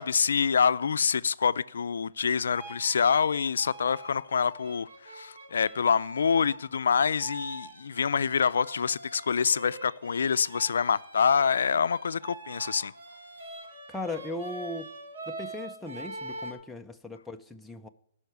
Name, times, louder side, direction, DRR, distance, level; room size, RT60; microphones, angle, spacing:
voice 1, 0.0-12.9, left 6 dB, 90° left, 0.3 m, -26 dB
sound 1, 2.5-6.6 7.2-16.5, right 1 dB, 70° right, 4.1 m, -44 dB
voice 2, 13.9-14.9 15.3-17.9, left 2 dB, 5° left, 0.5 m, -38 dB
13.0 x 5.6 x 7.9 m
hypercardioid pair, 155°, 0 cm